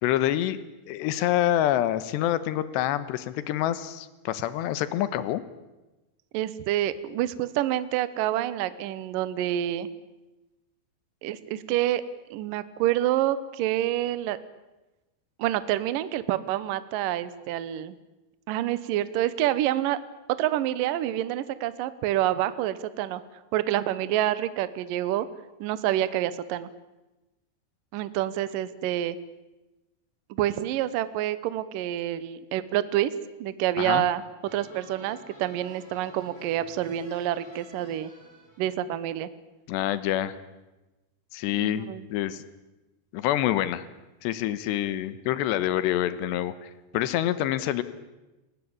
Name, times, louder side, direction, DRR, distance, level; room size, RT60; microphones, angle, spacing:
voice 1, 0.0-0.6 0.9-5.4 33.8-34.0 39.7-40.3 41.3-42.4 43.1-43.8 44.2-47.8, left 13 dB, 80° left, 14 dB, 3.2 m, -27 dB
voice 2, 6.3-9.9 11.2-12.0 12.3-14.4 15.4-18.0 18.5-20.0 20.4-23.2 23.5-25.3 25.6-26.7 27.9-29.2 30.3-33.1 33.4-34.2 34.5-38.1 38.6-39.3 41.6-42.1, right 13 dB, 70° right, 15 dB, 2.1 m, -27 dB
sound 1, 34.4-38.7, equal, 35° left, 8.4 m, -51 dB
30.0 x 18.0 x 8.8 m, 1.1 s
omnidirectional pair, 5.1 m